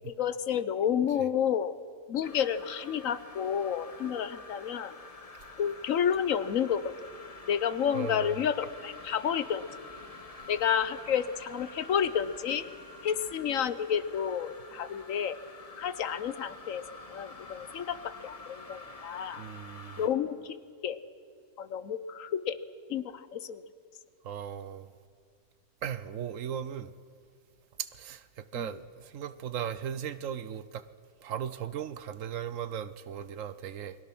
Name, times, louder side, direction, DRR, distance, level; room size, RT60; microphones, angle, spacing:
voice 1, 0.1-1.7 2.1-5.0 5.6-6.9 7.5-9.6 10.5-12.7 13.0-15.4 15.8-19.4 20.0-20.6 20.8-21.0 21.6-22.6 22.9-23.6 28.5-28.7, left 8 dB, 80° left, 1.3 m, -30 dB
sound 1, 2.2-20.1, left 3 dB, 30° left, 1.3 m, -48 dB
voice 2, 7.9-8.4 19.4-20.0 24.2-24.9 25.8-26.9 27.8-30.8 31.2-34.0, right 9 dB, 75° right, 1.2 m, -37 dB
29.0 x 21.5 x 6.1 m
omnidirectional pair, 1.4 m